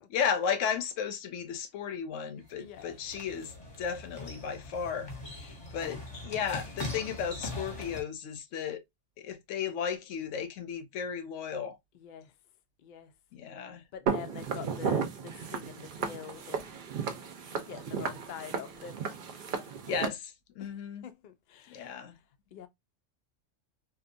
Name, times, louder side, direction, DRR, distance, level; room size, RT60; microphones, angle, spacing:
voice 1, 0.1-3.5 3.8-8.8 9.2-11.8 13.3-13.8 19.9-21.1 21.7-22.1, left 7 dB, 85° left, 0.9 m, -34 dB
sound 1, 2.4-8.0, left 2 dB, 30° left, 0.8 m, -41 dB
voice 2, 2.6-3.0 11.9-12.3 12.8-13.1 13.9-16.8 17.5-19.1 20.6-20.7 21.0-22.2 22.5-22.7, left 8 dB, 65° left, 0.5 m, -46 dB
Walk footsteps, 14.1-20.1, right 6 dB, 55° right, 0.6 m, -34 dB
2.8 x 2.3 x 2.5 m
omnidirectional pair, 1.3 m